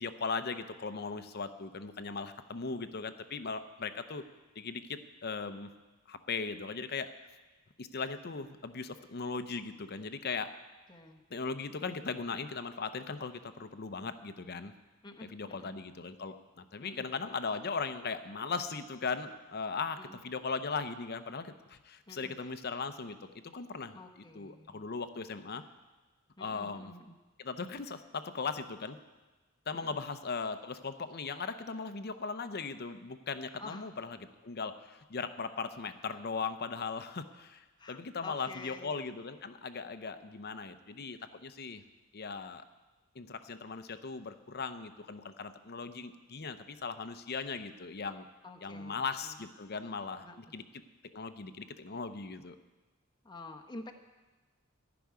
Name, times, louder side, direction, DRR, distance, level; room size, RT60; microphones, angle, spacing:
voice 1, 0.0-4.2 4.6-5.7 6.1-7.1 7.8-10.5 11.3-14.7 15.3-20.0 20.2-25.6 26.4-26.9 27.4-29.0 29.7-34.2 34.4-41.8 42.1-42.7 43.1-48.3 48.6-50.3 50.5-50.6 51.1-52.6, left 4 dB, 50° left, 10 dB, 0.7 m, -38 dB
voice 2, 10.9-11.2 15.0-15.7 16.8-17.1 20.0-20.2 22.1-22.3 23.9-24.8 26.4-27.1 29.7-30.0 33.6-33.9 37.8-38.9 48.4-49.4 50.2-50.5 53.2-53.9, left 2 dB, 20° left, 4 dB, 1.0 m, -49 dB
14.0 x 6.1 x 9.6 m, 1.2 s
head